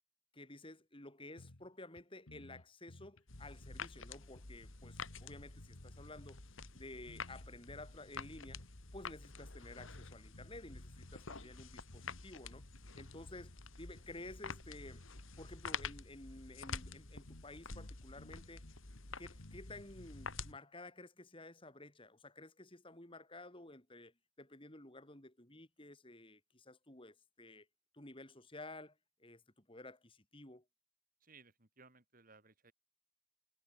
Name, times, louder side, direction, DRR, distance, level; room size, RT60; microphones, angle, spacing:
voice 1, 0.3-6.4 6.7-8.7 8.9-12.6 13.0-15.0 15.4-18.6 19.2-27.7 27.9-30.6, left 2 dB, 25° left, 3.1 m, -53 dB
sound 1, 1.4-2.0 2.3-3.9 4.3-6.4 6.8-8.7 9.0-9.2 9.6-11.3 11.6-12.2 12.5-13.6 14.0-16.0 16.4-16.5 16.7-17.0 17.3-20.6, left 1 dB, 85° left, 2.1 m, -57 dB
sound 2, 3.3-20.5, left 5 dB, 65° left, 2.6 m, -49 dB
voice 2, 31.2-32.7, right 4 dB, 40° right, 3.1 m, -62 dB
head